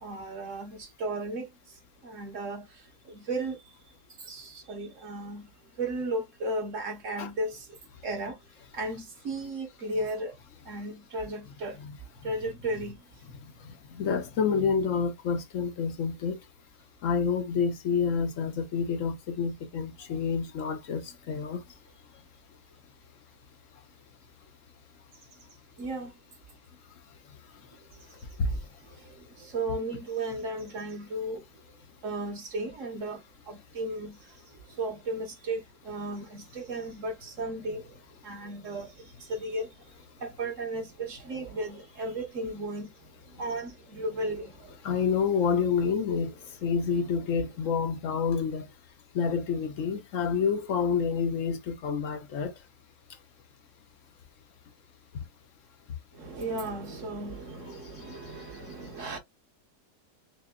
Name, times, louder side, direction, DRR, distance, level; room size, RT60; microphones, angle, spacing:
voice 1, 0.0-1.5 2.0-2.6 3.1-3.6 4.2-5.4 5.8-7.7 8.0-8.4 8.7-10.3 10.7-11.8 12.2-13.0 25.8-26.1 29.0-31.4 32.0-33.2 33.5-34.1 34.8-37.9 38.2-38.9 39.3-39.7 40.2-42.9 43.4-44.7 56.2-59.2, right 2 dB, 50° right, 1.5 m, -35 dB
voice 2, 13.9-16.4 17.0-21.6 28.4-28.5 44.8-46.3 46.6-48.7 49.1-52.5, left 6 dB, 60° left, 0.9 m, -28 dB
6.6 x 2.2 x 2.3 m
omnidirectional pair, 1.8 m